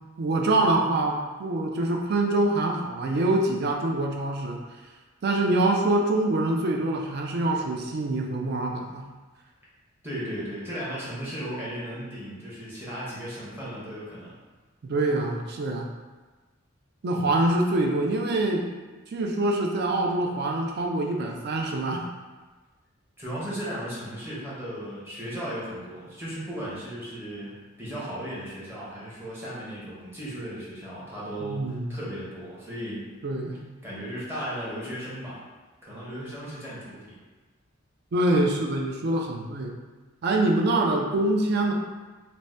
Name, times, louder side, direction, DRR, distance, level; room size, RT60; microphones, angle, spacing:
voice 1, 0.2-4.6 5.2-9.0 14.8-15.9 17.0-18.7 19.1-22.0 31.4-32.0 33.2-33.6 38.1-39.8 40.2-41.7, right 2 dB, 55° right, 1 dB, 0.4 m, -25 dB
voice 2, 10.0-14.3 23.2-33.0 33.8-35.4 35.8-37.1, equal, 10° right, -9 dB, 0.8 m, -36 dB
2.7 x 2.1 x 3.2 m, 1.3 s
head